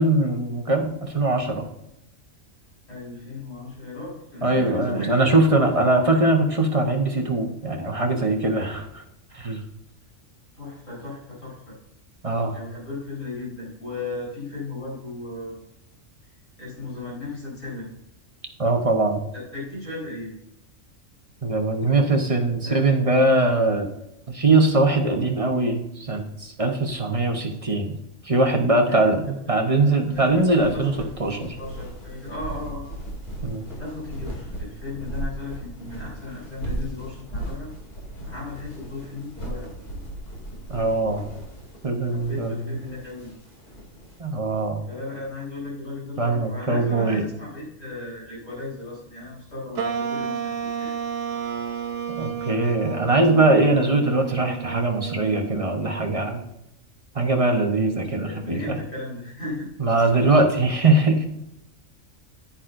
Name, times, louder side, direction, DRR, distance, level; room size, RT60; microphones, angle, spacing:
voice 1, 0.0-1.6 4.4-9.0 9.3-9.6 12.2-12.6 18.6-19.2 21.4-23.9 24.3-28.0 28.2-30.9 31.2-31.5 33.4-33.7 40.7-41.2 41.8-42.8 44.2-44.8 46.2-47.2 52.2-56.4 57.1-58.8 59.8-61.3, right 2 dB, 30° right, 3 dB, 1.0 m, -21 dB
voice 2, 2.9-5.9 10.5-11.8 12.5-15.6 16.6-17.9 19.3-20.3 22.6-22.8 28.8-29.6 30.0-30.4 30.7-31.0 31.3-32.9 33.7-37.7 38.3-39.7 42.1-43.4 44.9-50.9 58.2-59.7, left 2 dB, 70° left, -6 dB, 4.5 m, -36 dB
sound 1, 30.0-44.2, right 1 dB, 50° left, 3.1 m, -37 dB
sound 2, 49.8-56.4, right 8 dB, 85° right, 1.1 m, -31 dB
10.5 x 9.9 x 2.6 m, 0.84 s
omnidirectional pair, 1.4 m